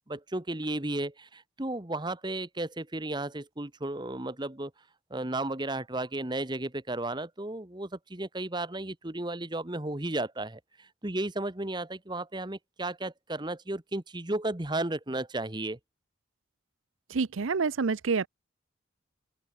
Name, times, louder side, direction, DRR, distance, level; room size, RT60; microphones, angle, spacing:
voice 1, 0.1-4.7 5.1-15.8, right 2 dB, 20° right, 1.3 m, -34 dB
voice 2, 17.1-18.3, right 4 dB, 85° right, 0.6 m, -27 dB
open air
head